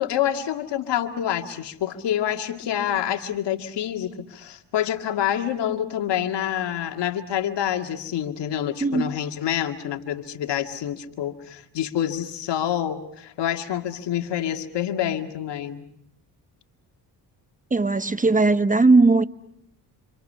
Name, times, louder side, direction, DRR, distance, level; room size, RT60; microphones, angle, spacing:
voice 1, 0.0-15.9, left 10 dB, 75° left, 2.1 m, -27 dB
voice 2, 8.8-9.1 17.7-19.2, right 3 dB, 20° right, 0.9 m, -18 dB
28.0 x 27.0 x 5.6 m
cardioid pair, 70°, 42 cm